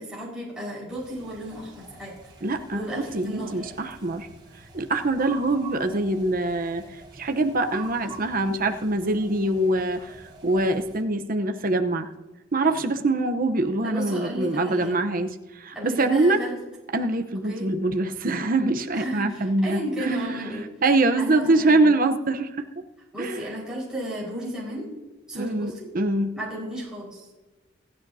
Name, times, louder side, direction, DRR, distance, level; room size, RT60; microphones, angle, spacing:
voice 1, 0.0-2.1 2.7-3.7 13.8-15.0 15.7-16.6 17.5-17.7 18.9-20.7 21.2-21.9 23.1-24.9 25.3-25.9 26.3-27.4, right 1 dB, 5° right, -7 dB, 5.0 m, -34 dB
sound 1, 0.9-11.0, right 3 dB, 25° right, 4.7 m, -46 dB
voice 2, 2.4-4.3 4.7-6.8 7.1-12.1 12.5-16.4 16.9-20.5 20.8-22.5 23.2-23.4 25.3-26.3, right 2 dB, 45° right, 6 dB, 0.9 m, -24 dB
27.5 x 9.9 x 2.8 m, 1.2 s
head